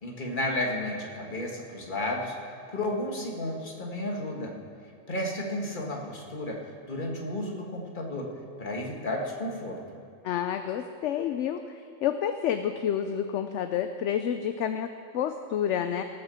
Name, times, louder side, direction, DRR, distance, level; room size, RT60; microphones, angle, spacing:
voice 1, 0.0-2.3 2.7-4.5 5.1-6.6 6.9-8.3 8.6-10.0, left 1 dB, 40° left, 0 dB, 1.8 m, -32 dB
voice 2, 10.2-11.6 12.0-16.0, left 9 dB, 70° left, 8 dB, 0.8 m, -29 dB
18.5 x 6.5 x 6.9 m, 2.6 s
omnidirectional pair, 1.4 m